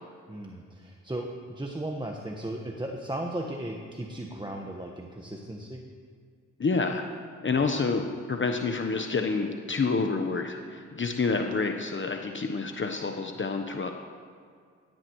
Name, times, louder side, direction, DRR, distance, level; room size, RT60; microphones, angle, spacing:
voice 1, 0.3-5.8 7.5-7.7, right 1 dB, 15° right, 1 dB, 1.5 m, -36 dB
voice 2, 6.6-7.0 7.4-13.9, left 4 dB, 35° left, 4 dB, 1.1 m, -28 dB
17.0 x 13.5 x 3.2 m, 2.1 s
supercardioid pair, 50°, 32 cm